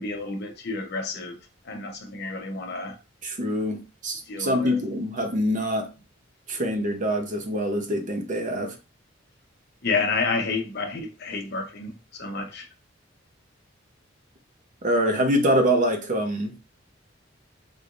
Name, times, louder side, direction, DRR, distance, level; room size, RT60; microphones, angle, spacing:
voice 1, 0.0-1.3 1.7-2.9 4.3-4.8 9.8-12.7, left 4 dB, 55° left, 0.8 m, -30 dB
voice 2, 3.2-5.9 6.5-8.8 14.8-16.7, equal, 40° right, 0.8 m, -25 dB
3.8 x 3.4 x 2.5 m
head